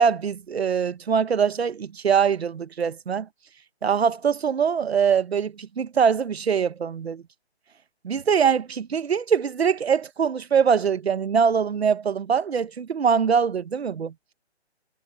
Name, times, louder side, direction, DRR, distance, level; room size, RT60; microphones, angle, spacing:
voice 1, 0.0-3.3 3.8-7.2 8.0-14.1, right 7 dB, 70° right, 1.2 m, -23 dB
hypercardioid pair, 160°, 33 cm